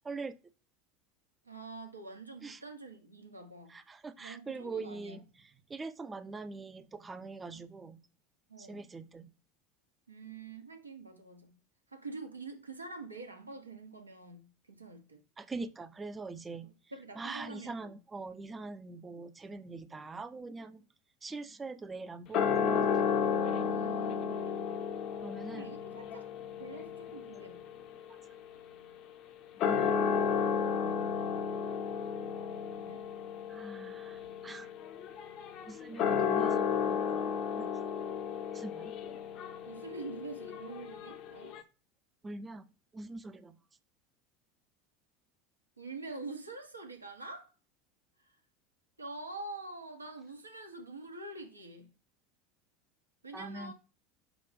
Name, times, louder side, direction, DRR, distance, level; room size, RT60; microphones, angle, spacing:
voice 1, 0.0-0.4 2.4-2.6 3.7-8.0 8.6-9.3 15.4-16.7 17.2-20.8 21.2-23.0 25.2-25.7 28.1-28.2 29.6-30.0 33.5-34.7 35.7-37.2 37.5-37.7 38.5-38.9 42.2-42.7 42.9-43.6 53.3-53.7, right 3 dB, 20° right, 0.5 m, -43 dB
voice 2, 1.4-3.7 4.2-5.2 8.5-8.9 10.1-11.5 11.9-15.2 16.6-18.0 23.5-24.8 25.5-26.3 26.6-27.7 30.6-30.9 32.7-33.1 39.6-41.6 45.8-47.5 48.2-48.3 49.0-51.9 53.2-53.7, right 3 dB, 85° right, 0.9 m, -46 dB
sound 1, 22.3-29.0 29.5-41.6, left 7 dB, 45° left, 0.7 m, -33 dB
6.0 x 2.4 x 3.5 m
figure-of-eight pair, 75°, 0 cm